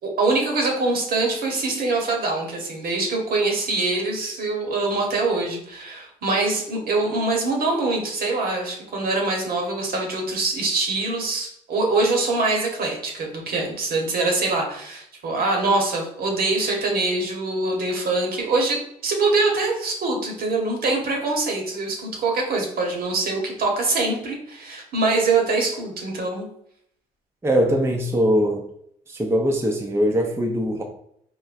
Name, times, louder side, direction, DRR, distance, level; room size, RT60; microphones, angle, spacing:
voice 1, 0.2-26.5, right 3 dB, 65° right, 0 dB, 1.0 m, -24 dB
voice 2, 27.4-28.7 29.1-30.8, equal, 15° right, 2 dB, 0.5 m, -21 dB
3.8 x 2.1 x 2.5 m, 0.70 s
hypercardioid pair, 55°, 17 cm